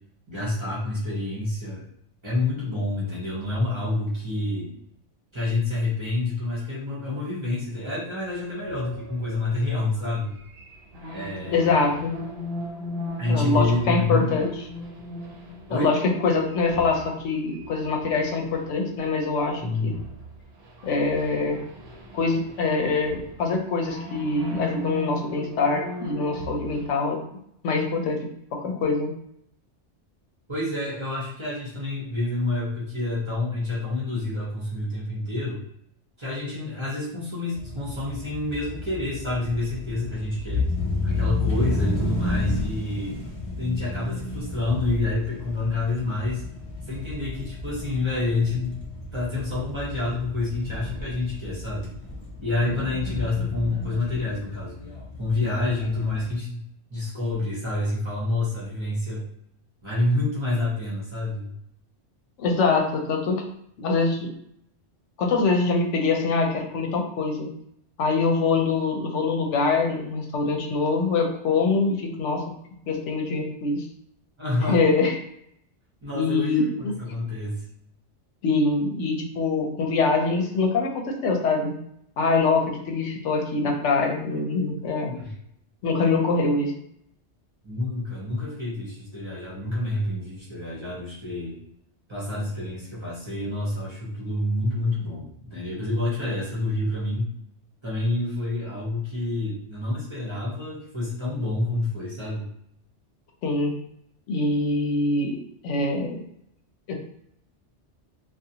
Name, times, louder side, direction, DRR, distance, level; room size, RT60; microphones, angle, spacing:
voice 1, 0.3-1.8 2.2-4.7 5.3-10.4 11.1-11.7 13.2-14.3 15.7-15.9 19.6-20.0 30.5-35.6 36.2-40.6 41.0-43.2 43.6-46.4 46.9-48.8 49.1-51.9 52.4-54.8 55.2-56.6 56.9-59.2 59.8-61.5 74.4-74.8 76.0-77.7 85.1-85.3 87.6-91.6 92.1-97.3 97.8-102.5, left 2 dB, 30° right, -8 dB, 0.8 m, -28 dB
sound 1, 8.5-19.6 19.9-26.9, left 1 dB, 60° right, 0.8 m, -38 dB
voice 2, 11.5-12.1 13.3-14.5 15.7-19.9 20.8-21.6 22.1-27.2 27.6-28.2 28.5-29.1 62.4-63.4 63.8-64.3 65.2-67.5 68.0-72.4 72.9-73.8 74.7-75.1 76.1-76.7 78.4-80.9 81.2-81.7 82.2-85.1 85.8-86.7 103.4-103.7 104.3-106.2 106.9-107.0, left 3 dB, 85° left, 2 dB, 0.9 m, -24 dB
sound 2, 37.5-56.3, left 3 dB, 55° left, 0.3 m, -32 dB
2.4 x 2.3 x 2.7 m, 0.72 s
omnidirectional pair, 1.2 m